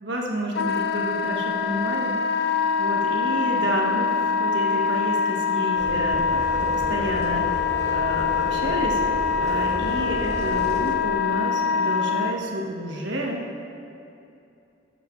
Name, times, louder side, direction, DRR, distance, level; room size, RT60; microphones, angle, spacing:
voice 1, 0.0-4.1 4.4-7.4 7.9-9.0 9.4-13.4, equal, 75° right, -1 dB, 1.4 m, -30 dB
Wind instrument woodwind instrument, 0.6-12.3, left 6 dB, 55° left, 0.4 m, -24 dB
sound 1, 5.8-10.9, right 1 dB, 35° right, 0.9 m, -33 dB
13.0 x 7.6 x 3.2 m, 2.7 s
head